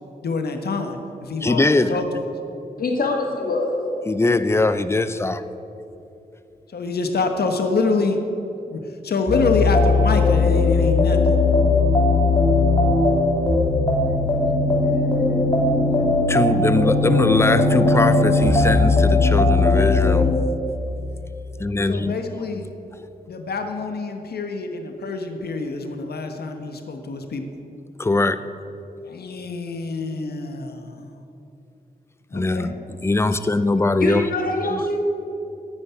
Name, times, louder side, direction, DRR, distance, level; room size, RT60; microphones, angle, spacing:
voice 1, 0.2-2.3 6.7-8.2 8.7-11.3 21.9-22.7 23.3-27.4 29.0-31.0 32.3-32.8, left 3 dB, 90° left, 6 dB, 1.4 m, -26 dB
voice 2, 1.4-2.0 4.0-5.4 16.3-20.3 21.6-22.2 28.0-28.4 32.3-32.7 33.0-34.3 34.7-34.8, left 2 dB, 15° left, 12 dB, 0.5 m, -21 dB
voice 3, 2.8-3.8 34.0-35.0, left 2 dB, 65° left, 2 dB, 2.0 m, -24 dB
sound 1, 9.3-20.3, left 3 dB, 35° left, 2.8 m, -18 dB
10.5 x 9.7 x 9.8 m, 2.8 s
wide cardioid pair, 170°, 16 cm